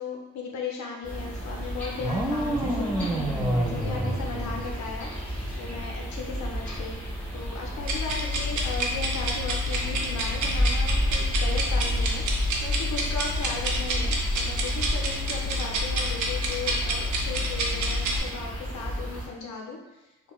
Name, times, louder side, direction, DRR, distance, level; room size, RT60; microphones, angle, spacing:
voice 1, 0.0-5.1 5.6-12.2 12.6-20.3, left 4 dB, 70° left, 0 dB, 0.6 m, -37 dB
sound 1, 1.0-19.3, equal, 5° left, 1.3 m, -31 dB
sound 2, 2.0-5.1, right 1 dB, 10° right, 0.3 m, -28 dB
sound 3, 7.8-18.2, equal, 75° right, 0.6 m, -29 dB
3.5 x 2.1 x 2.3 m, 1.0 s
cardioid pair, 90°, 30 cm